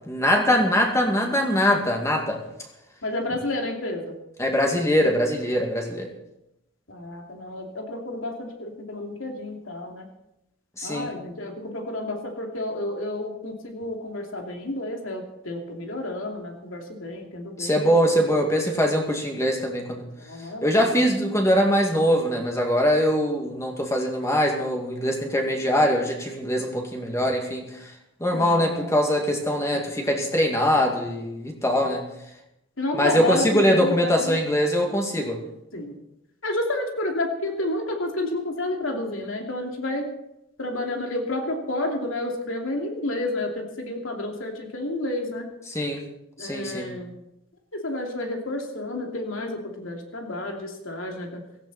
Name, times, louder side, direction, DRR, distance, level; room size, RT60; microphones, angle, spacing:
voice 1, 0.1-2.4 4.4-6.1 10.8-11.1 17.6-20.1 20.6-27.9 28.2-32.0 32.9-35.4 45.7-46.0 46.4-46.9, equal, 15° left, 2 dB, 2.1 m, -22 dB
voice 2, 3.0-4.2 6.9-10.1 10.8-18.5 20.2-21.0 28.3-29.0 31.6-31.7 32.8-34.4 35.7-35.9 36.4-40.1 40.6-45.5 46.4-47.1 47.7-51.4, left 1 dB, 85° left, 2 dB, 2.8 m, -30 dB
16.5 x 15.0 x 4.3 m, 0.86 s
head